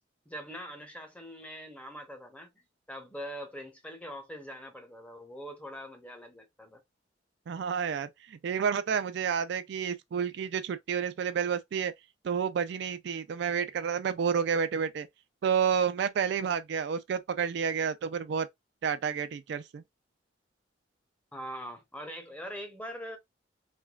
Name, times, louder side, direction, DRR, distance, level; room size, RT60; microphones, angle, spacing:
voice 1, 0.3-6.8 21.3-23.2, equal, 5° left, 0.7 m, -43 dB
voice 2, 7.5-11.9 12.2-15.1 15.4-18.5 18.8-19.8, right 7 dB, 65° right, 0.3 m, -30 dB
3.3 x 2.2 x 2.3 m
head